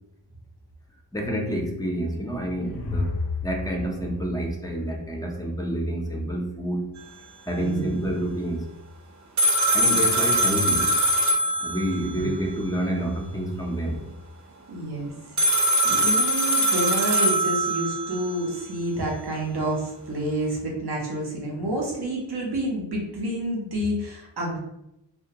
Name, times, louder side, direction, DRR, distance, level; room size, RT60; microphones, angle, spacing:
voice 1, 1.1-3.1 3.4-6.9 7.5-8.7 9.7-10.9 11.6-14.1, right 1 dB, 10° left, 1 dB, 0.5 m, -28 dB
sound 1, 2.1-5.4, left 3 dB, 55° left, 0.5 m, -32 dB
voice 2, 7.6-8.0 12.2-12.3 14.7-15.1 15.8-24.6, right 1 dB, 60° right, -2 dB, 0.8 m, -29 dB
sound 2, 9.4-12.2 15.4-18.4, right 1 dB, 40° right, 0.5 m, -22 dB
2.2 x 2.2 x 2.8 m, 0.84 s
cardioid pair, 45°, 45 cm